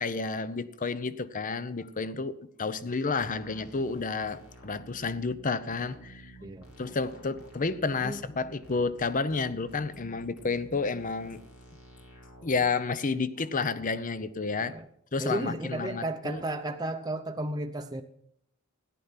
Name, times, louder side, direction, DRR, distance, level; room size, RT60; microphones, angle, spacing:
voice 1, 0.0-6.3 6.8-11.4 12.4-14.8 15.1-16.4, left 4 dB, 40° left, 0.7 m, -31 dB
sound 1, 3.2-12.5, right 1 dB, 85° left, 4.5 m, -51 dB
voice 2, 15.2-18.0, right 1 dB, 20° right, 0.7 m, -33 dB
14.0 x 11.0 x 5.7 m
head